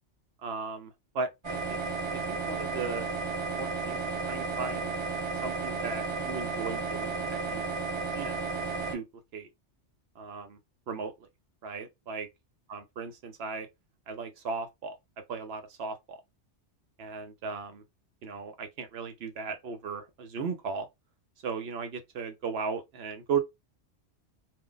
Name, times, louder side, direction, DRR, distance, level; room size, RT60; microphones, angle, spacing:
voice 1, 0.4-3.1 3.6-4.0 4.3-4.9 5.4-7.6 8.1-8.3 8.9-9.0 9.3-9.5 10.2-10.6 10.9-11.1 11.6-12.3 12.7-13.7 14.1-15.0 15.3-16.2 17.0-17.8 18.2-20.9 21.4-23.4, right 5 dB, 65° right, 0.9 m, -36 dB
sound 1, 1.4-9.0, right 4 dB, 25° right, 0.9 m, -33 dB
2.6 x 2.1 x 3.8 m
omnidirectional pair, 1.2 m